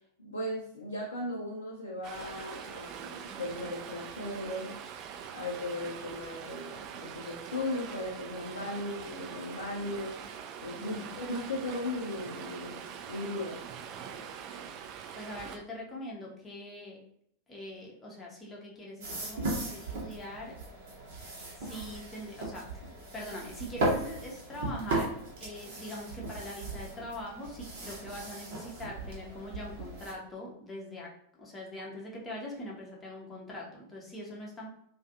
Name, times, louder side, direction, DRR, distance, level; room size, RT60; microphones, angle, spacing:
voice 1, 0.2-4.8 5.3-10.2 10.6-13.6, left 1 dB, 75° left, -4 dB, 0.5 m, -37 dB
Stream, 2.0-15.6, right 7 dB, 40° right, 0.4 m, -43 dB
voice 2, 10.8-11.1 15.1-17.0 17.5-20.5 21.6-31.1 31.4-34.7, left 1 dB, 15° left, -3 dB, 0.7 m, -42 dB
sound 1, 19.0-30.1, right 2 dB, 55° right, 0.8 m, -37 dB
2.5 x 2.3 x 2.6 m, 0.70 s
figure-of-eight pair, 90°, 0 cm